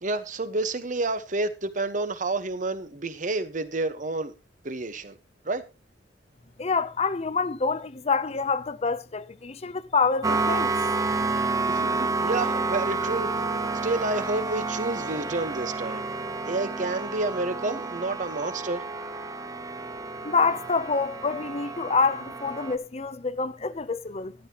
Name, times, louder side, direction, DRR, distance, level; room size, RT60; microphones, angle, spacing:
voice 1, 0.0-4.3 4.6-5.2 5.4-5.6 11.7-13.4 13.8-16.1 16.4-18.8, right 2 dB, 45° right, 1.2 m, -29 dB
voice 2, 6.6-10.7 20.2-24.3, left 4 dB, 35° left, 0.7 m, -27 dB
sound 1, 10.2-22.8, right 3 dB, 20° right, 0.9 m, -30 dB
13.0 x 12.0 x 3.0 m
head